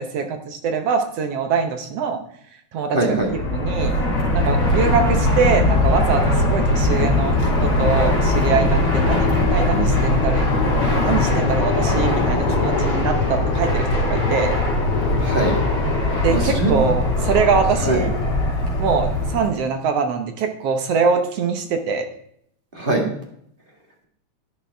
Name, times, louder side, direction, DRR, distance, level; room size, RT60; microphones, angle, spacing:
voice 1, 0.0-2.2 2.7-3.9 4.4-10.4 11.0-14.5 16.2-18.1 18.8-22.1, right 5 dB, 65° right, 6 dB, 1.8 m, -23 dB
voice 2, 2.9-3.3 15.1-15.5 16.3-16.9 17.8-18.0 22.7-23.1, right 2 dB, 25° right, 1 dB, 1.4 m, -22 dB
Fixed-wing aircraft airplane, 3.1-19.5, left 2 dB, 50° left, 4.1 m, -20 dB
11.0 x 10.5 x 3.4 m, 0.71 s
omnidirectional pair, 3.4 m